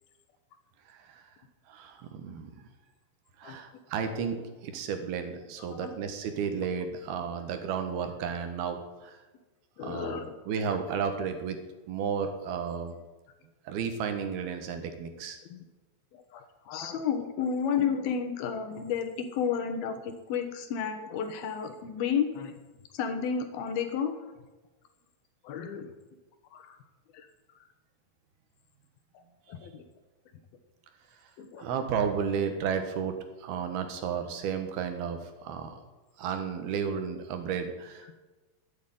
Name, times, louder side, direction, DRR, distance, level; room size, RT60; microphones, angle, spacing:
voice 1, 0.9-1.2 1.7-2.5 3.4-9.2 9.8-10.2 10.5-11.6 11.9-13.0 13.7-15.4 31.6-33.1 33.4-35.8 36.2-38.1, right 7 dB, 80° right, 7 dB, 3.4 m, -33 dB
voice 2, 9.8-10.4 10.7-10.8 15.5-15.6 16.1-22.5 22.9-24.2 25.4-25.9 26.5-26.8 27.1-27.3 29.1-29.2 29.5-29.8 31.4-31.7 38.1-38.2, left 7 dB, 75° left, 7 dB, 3.2 m, -32 dB
12.5 x 9.5 x 9.3 m, 1.2 s
omnidirectional pair, 4.4 m